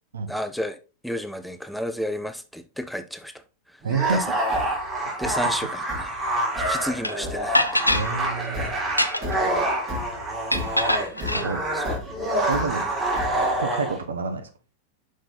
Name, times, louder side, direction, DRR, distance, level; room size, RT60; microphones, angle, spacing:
voice 1, 0.3-0.8 1.0-3.4 4.1-4.2 5.2-6.2 6.6-7.8 11.7-11.9 12.7-12.8, equal, ahead, 0.5 m, -32 dB
sound 1, 3.8-14.0, right 1 dB, 20° right, 3.6 m, -27 dB
voice 2, 3.8-4.2 7.9-8.7 11.3-11.6 12.4-12.8 13.6-14.5, right 4 dB, 70° right, 1.0 m, -28 dB
Thump thud, 4.1-13.7, left 2 dB, 40° right, 3.6 m, -36 dB
sound 2, 7.0-7.1 7.5-8.1 8.8-9.4 10.5-11.5, left 1 dB, 90° left, 0.5 m, -23 dB
6.2 x 5.4 x 4.0 m
figure-of-eight pair, 90°, 0 cm